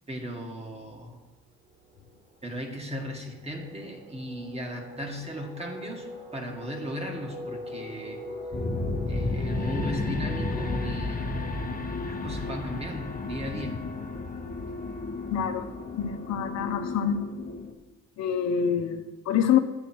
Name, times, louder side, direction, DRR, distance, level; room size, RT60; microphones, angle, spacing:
voice 1, 0.1-1.2 2.4-8.2 9.1-13.8, equal, 20° right, 1 dB, 2.0 m, -37 dB
sound 1, 1.3-12.9, left 1 dB, 35° right, 3.3 m, -42 dB
sound 2, 8.5-17.7, left 3 dB, 30° left, 1.1 m, -32 dB
voice 2, 15.3-15.7 16.0-17.2 18.2-19.6, left 8 dB, 65° left, 5 dB, 0.8 m, -26 dB
9.7 x 7.8 x 4.6 m, 1.1 s
cardioid pair, 90°, 30 cm